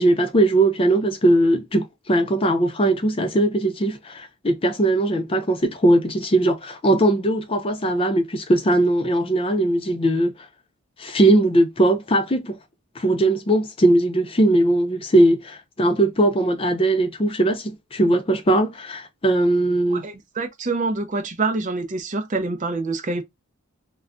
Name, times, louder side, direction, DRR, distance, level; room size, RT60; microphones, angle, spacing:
voice 1, 0.0-10.3 11.0-12.6 13.0-20.0, right 1 dB, 25° left, 0.5 m, -19 dB
voice 2, 19.9-23.2, right 3 dB, 35° right, 0.5 m, -26 dB
2.3 x 2.2 x 3.6 m
head